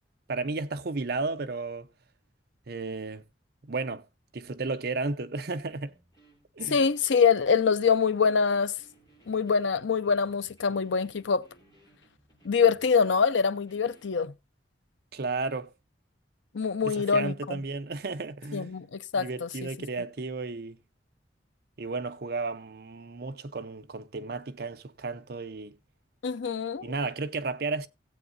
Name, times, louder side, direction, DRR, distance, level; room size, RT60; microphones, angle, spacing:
voice 1, 0.3-1.9 2.7-3.2 3.6-4.1 4.3-5.9 6.5-6.8 15.1-15.7 16.8-18.7 19.2-20.8 21.8-25.8 26.8-27.9, right 3 dB, 55° right, 0.7 m, -33 dB
sound 1, 5.3-14.2, right 2 dB, 25° left, 5.5 m, -61 dB
voice 2, 6.7-8.7 9.3-11.4 12.4-14.3 16.5-17.6 18.5-19.7 26.2-26.9, left 5 dB, 85° left, 0.6 m, -25 dB
17.0 x 8.0 x 2.6 m
head